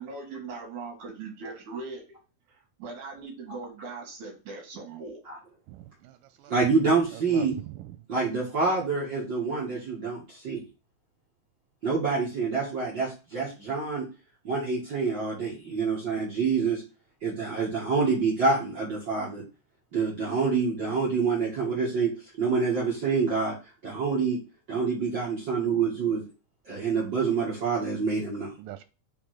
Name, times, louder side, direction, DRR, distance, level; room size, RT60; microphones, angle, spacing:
voice 1, 0.0-2.0 2.5-5.2, right 4 dB, 75° right, 3.1 m, -40 dB
voice 2, 5.7-6.5 7.1-7.9 28.6-28.8, right 14 dB, 90° right, 2.2 m, -42 dB
voice 3, 6.5-7.6 8.1-10.6 11.8-14.1 14.4-16.8 17.2-19.4 19.9-22.1 22.4-23.5 23.8-24.4 24.7-26.2 26.7-28.6, right 4 dB, 40° right, 2.1 m, -27 dB
6.2 x 3.5 x 4.9 m
omnidirectional pair, 3.6 m